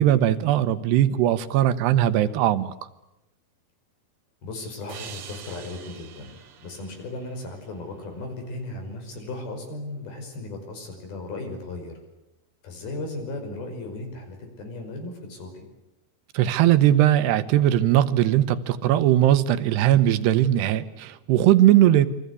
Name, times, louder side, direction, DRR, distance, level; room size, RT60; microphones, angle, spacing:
voice 1, 0.0-2.7 16.3-22.1, right 12 dB, 85° right, 12 dB, 3.2 m, -19 dB
voice 2, 4.4-12.0 12.6-15.7, left 2 dB, 65° left, 5 dB, 7.2 m, -36 dB
sound 1, 4.9-8.2, right 8 dB, 50° right, 1.7 m, -45 dB
28.5 x 23.5 x 8.4 m, 0.90 s
omnidirectional pair, 4.7 m